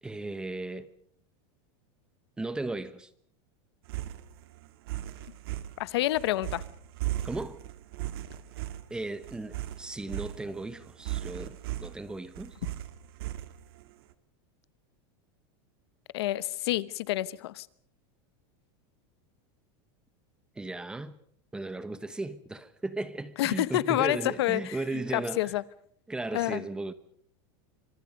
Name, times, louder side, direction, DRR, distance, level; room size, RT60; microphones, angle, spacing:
voice 1, 0.0-0.9 2.4-3.1 7.2-7.6 8.9-12.6 20.5-21.2 21.5-25.6 26.1-26.9, right 2 dB, 5° right, 1.0 m, -36 dB
sound 1, 3.8-13.9, right 14 dB, 65° right, 1.9 m, -37 dB
voice 2, 5.8-6.6 16.1-17.7 23.4-24.8 25.1-25.6 26.3-26.6, left 15 dB, 75° left, 1.0 m, -28 dB
26.0 x 25.5 x 5.3 m
supercardioid pair, 165°, 14 cm